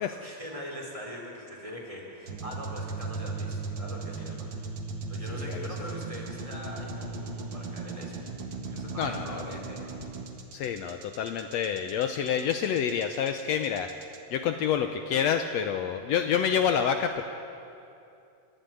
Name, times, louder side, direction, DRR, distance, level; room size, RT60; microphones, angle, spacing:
voice 1, 0.0-4.6 5.1-8.2 8.7-9.9, equal, 10° right, -1 dB, 4.1 m, -42 dB
sound 1, 2.3-14.2, right 3 dB, 45° right, 2.1 m, -37 dB
voice 2, 5.3-5.7 9.0-9.4 10.5-13.9 14.3-17.2, left 8 dB, 70° left, 7 dB, 1.9 m, -28 dB
29.0 x 13.5 x 9.2 m, 2.7 s
omnidirectional pair, 3.3 m